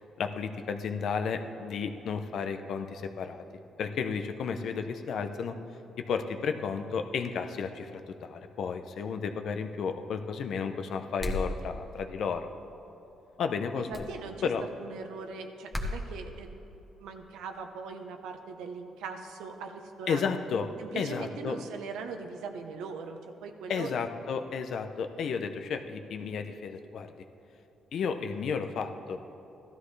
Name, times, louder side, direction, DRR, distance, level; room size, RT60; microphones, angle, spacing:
voice 1, 0.0-3.4 3.8-5.5 6.0-12.5 13.4-14.2 14.4-14.6 20.1-20.7 20.9-21.6 23.7-27.1 27.9-29.2, left 6 dB, 65° left, 7 dB, 0.7 m, -33 dB
sound 1, 11.2-11.5 13.9-14.1 15.7-16.0, left 1 dB, 10° left, 1.3 m, -32 dB
voice 2, 13.8-14.5 14.8-16.5 17.0-20.2 20.8-23.9, right 5 dB, 90° right, 5 dB, 0.9 m, -40 dB
15.0 x 12.5 x 3.3 m, 3.0 s
cardioid pair, 90°, 0 cm